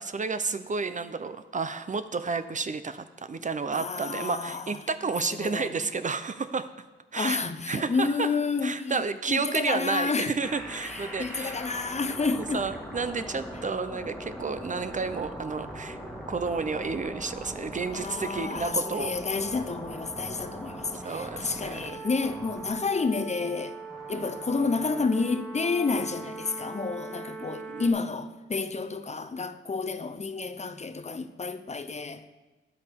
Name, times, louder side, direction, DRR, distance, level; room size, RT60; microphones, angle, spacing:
voice 1, 0.0-6.7 7.1-7.4 7.7-8.3 8.6-11.6 12.5-16.0 16.3-19.1 20.9-22.1 24.1-24.3 27.4-27.9, right 4 dB, 40° right, 0.5 m, -31 dB
voice 2, 3.7-4.7 5.2-5.7 7.2-9.0 9.3-10.4 10.8-12.6 17.9-23.8 24.1-32.3, left 4 dB, 35° left, 0.6 m, -30 dB
sound 1, 10.4-27.9, right 1 dB, ahead, 1.6 m, -40 dB
12.5 x 8.6 x 3.5 m
wide cardioid pair, 90°, 21 cm